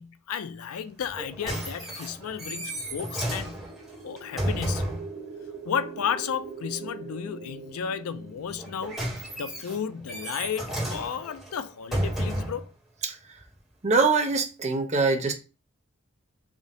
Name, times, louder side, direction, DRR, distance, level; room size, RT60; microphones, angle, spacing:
voice 1, 0.0-3.6 4.0-5.0 5.7-9.0 9.4-12.7, left 7 dB, 75° left, 0.4 m, -33 dB
sound 1, 1.0-5.1 8.5-12.7 13.4-13.5, right 1 dB, ahead, 1.5 m, -32 dB
sound 2, 2.6-10.7, right 5 dB, 60° right, 1.0 m, -43 dB
voice 2, 13.8-15.3, right 4 dB, 30° right, 0.7 m, -23 dB
3.6 x 2.6 x 3.7 m
head